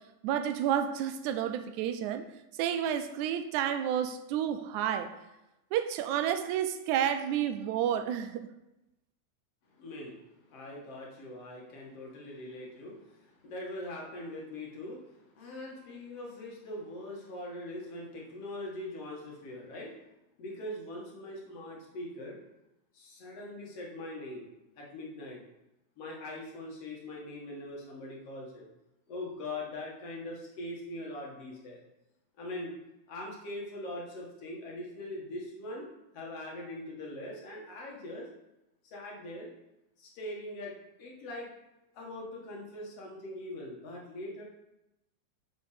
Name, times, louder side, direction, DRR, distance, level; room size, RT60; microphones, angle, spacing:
voice 1, 0.2-2.3 2.6-5.1 5.7-8.5, right 9 dB, 80° right, 9 dB, 2.0 m, -30 dB
voice 2, 9.8-20.0 20.4-22.4 22.9-24.5 24.8-25.4 26.0-28.7 29.1-31.8 32.4-32.8 33.1-35.9 36.1-38.3 38.8-39.5 40.0-41.5 41.9-44.4, left 1 dB, 55° left, -2 dB, 2.6 m, -42 dB
7.8 x 5.9 x 5.1 m, 0.92 s
omnidirectional pair, 3.5 m